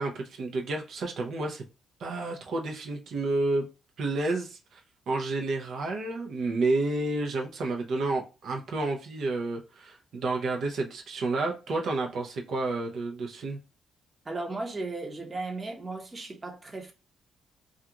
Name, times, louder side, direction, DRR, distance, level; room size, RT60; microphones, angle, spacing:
voice 1, 0.0-1.6 2.0-3.7 4.0-13.6, right 2 dB, 65° right, 0.6 m, -30 dB
voice 2, 14.2-16.9, right 3 dB, 25° right, 0.8 m, -36 dB
2.4 x 2.4 x 2.8 m
cardioid pair, 90°, 0 cm